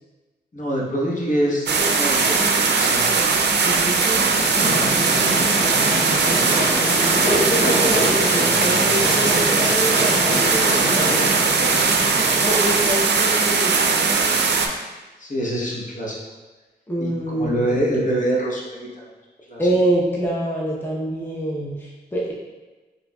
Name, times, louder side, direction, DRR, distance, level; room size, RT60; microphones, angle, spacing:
voice 1, 0.5-3.4 4.1-5.8 15.2-16.2 17.0-18.9 19.5-19.7, right 1 dB, 45° left, -4 dB, 1.0 m, -26 dB
sound 1, 1.7-14.7, right 4 dB, 75° right, 0.4 m, -19 dB
voice 2, 3.6-4.9 6.1-6.9 7.2-14.7 16.9-17.7 19.6-22.3, right 1 dB, 10° left, -4 dB, 0.7 m, -27 dB
sound 2, 4.5-12.5, left 1 dB, 85° left, 0.9 m, -25 dB
4.4 x 3.3 x 2.2 m, 1.2 s
cardioid pair, 55°, 18 cm